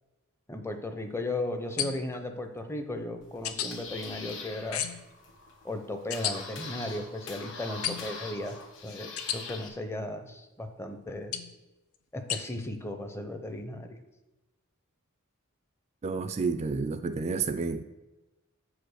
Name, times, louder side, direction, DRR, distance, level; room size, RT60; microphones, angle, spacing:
voice 1, 0.5-4.8 5.6-8.6 8.8-11.3 12.1-14.0, left 1 dB, 10° left, 0.6 m, -36 dB
sound 1, 1.8-2.2 3.4-3.7 4.7-5.1 6.1-6.3 7.8-8.2 9.2-9.4 11.3-11.6 12.3-12.4, left 9 dB, 85° left, 0.6 m, -32 dB
sound 2, 3.2-9.7, left 4 dB, 60° left, 1.4 m, -43 dB
voice 2, 16.0-17.8, right 4 dB, 30° right, 0.3 m, -30 dB
7.0 x 5.0 x 6.3 m
head